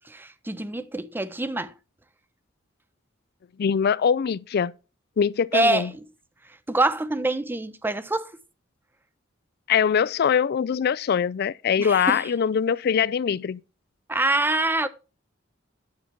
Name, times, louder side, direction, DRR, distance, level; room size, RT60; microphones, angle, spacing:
voice 1, 0.1-1.7 5.5-5.9 6.7-8.3 11.8-12.3 14.1-14.9, right 2 dB, 10° right, 0.5 m, -25 dB
voice 2, 3.6-4.7 5.2-5.9 9.7-13.6, left 7 dB, 55° left, 0.4 m, -23 dB
9.5 x 7.2 x 4.5 m
head